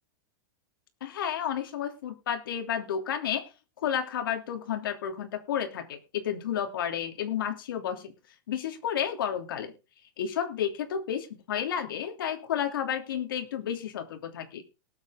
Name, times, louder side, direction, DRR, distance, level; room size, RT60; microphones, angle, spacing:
voice 1, 1.0-3.5 3.8-8.1 8.5-9.7 10.2-14.6, left 9 dB, 80° left, 6 dB, 2.9 m, -31 dB
19.5 x 8.0 x 3.7 m, 0.30 s
supercardioid pair, 175°, 11 cm